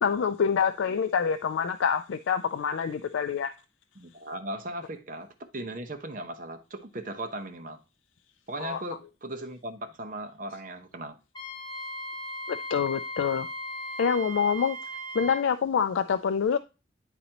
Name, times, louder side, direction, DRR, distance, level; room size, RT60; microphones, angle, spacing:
voice 1, 0.0-3.5 8.6-8.8 12.5-13.5 14.0-14.8 15.1-16.6, left 6 dB, 85° left, 0.4 m, -26 dB
voice 2, 4.0-7.8 8.5-11.2, right 1 dB, 45° right, 0.9 m, -38 dB
Wind instrument woodwind instrument, 11.4-15.5, equal, 25° left, 0.8 m, -37 dB
10.0 x 4.0 x 2.9 m
head